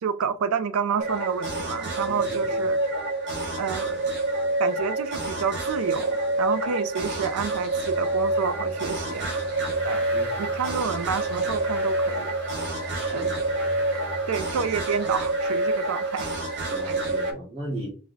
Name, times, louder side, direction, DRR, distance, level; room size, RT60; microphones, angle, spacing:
voice 1, 0.0-2.8 3.6-4.1 4.6-9.4 9.8-12.4 13.1-13.3 14.3-16.3 16.9-17.0, right 6 dB, 90° right, 0.4 m, -29 dB
sound 1, 1.0-17.3, right 2 dB, 60° right, 1.3 m, -27 dB
voice 2, 2.1-2.7 10.1-10.6 12.9-13.3 16.7-17.9, right 1 dB, 30° right, 1.5 m, -37 dB
sound 2, 7.7-14.8, left 1 dB, 10° left, 0.6 m, -41 dB
4.7 x 2.1 x 3.9 m
head